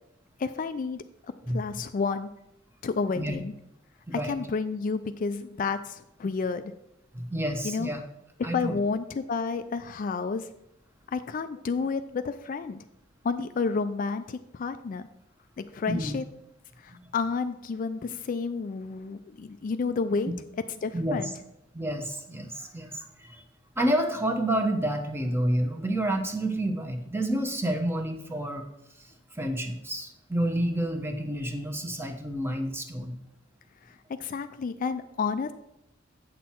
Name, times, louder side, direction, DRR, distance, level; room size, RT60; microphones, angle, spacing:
voice 1, 0.4-1.0 1.5-2.3 2.8-3.5 4.1-6.7 7.6-7.9 8.4-10.5 11.1-12.8 13.2-15.1 15.7-16.2 16.8-20.3 20.8-21.3 34.2-35.5, left 4 dB, 45° left, 10 dB, 0.3 m, -30 dB
voice 2, 1.5-1.8 3.1-3.4 4.1-4.4 7.1-8.0 8.4-8.8 15.9-16.2 16.9-17.0 20.9-21.3 21.7-23.4 23.8-28.7 29.3-33.1, right 1 dB, 10° right, 5 dB, 0.9 m, -29 dB
8.3 x 6.3 x 4.4 m, 0.87 s
head